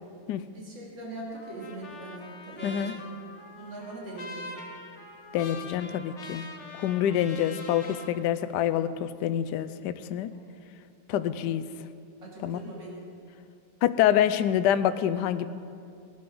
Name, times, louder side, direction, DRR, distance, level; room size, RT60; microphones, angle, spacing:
voice 1, 0.5-3.0 3.6-4.7 10.3-10.4 11.1-11.4 12.2-13.0, right 2 dB, 75° right, -4 dB, 3.3 m, -42 dB
Trumpet, 1.3-8.1, left 2 dB, 45° left, 1.3 m, -44 dB
voice 2, 2.6-2.9 5.3-6.4 6.7-10.3 11.1-11.6 12.4-12.6 13.8-15.5, left 10 dB, 75° left, 12 dB, 1.1 m, -26 dB
20.5 x 11.5 x 3.9 m, 2.4 s
omnidirectional pair, 2.0 m